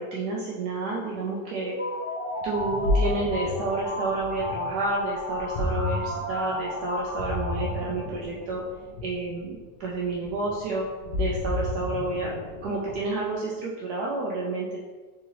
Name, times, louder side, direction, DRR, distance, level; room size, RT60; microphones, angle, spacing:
voice 1, 0.0-1.8 2.4-8.6 9.0-10.9 11.1-12.3 12.6-14.8, right 2 dB, 70° right, -4 dB, 1.0 m, -30 dB
sound 1, 1.6-8.4, left 1 dB, 20° right, 1.2 m, -34 dB
Ocean, 2.4-13.2, left 2 dB, 85° left, 1.4 m, -32 dB
3.8 x 3.6 x 2.9 m, 1.4 s
omnidirectional pair, 2.0 m